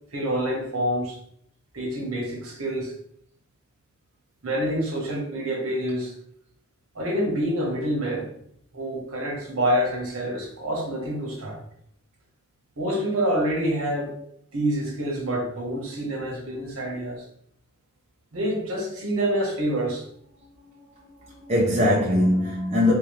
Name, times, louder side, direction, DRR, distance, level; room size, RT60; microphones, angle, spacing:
voice 1, 0.1-1.2 1.7-2.9 4.4-6.1 6.9-8.3 8.7-11.6 12.8-14.2 14.5-17.3 18.3-20.0, right 1 dB, 75° right, 1.3 m, -27 dB
voice 2, 20.7-22.9, left 1 dB, 30° right, 0.7 m, -22 dB
3.3 x 3.0 x 3.2 m
head